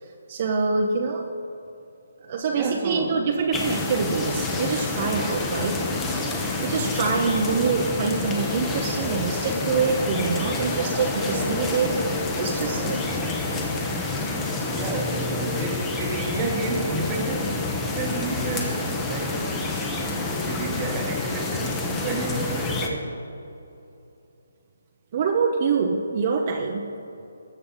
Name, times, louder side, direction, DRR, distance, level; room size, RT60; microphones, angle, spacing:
voice 1, 0.0-1.3 2.3-5.8 6.6-12.0 12.3-13.7 14.3-14.4 25.1-26.9, right 5 dB, 35° right, 1 dB, 0.8 m, -25 dB
voice 2, 2.5-3.3 14.2-19.6 20.4-23.2, right 3 dB, 15° right, 2 dB, 1.2 m, -31 dB
sound 1, 3.5-22.9, left 2 dB, 10° left, 0.9 m, -28 dB
20.0 x 6.7 x 3.9 m, 2.9 s
hypercardioid pair, 165°, 0 cm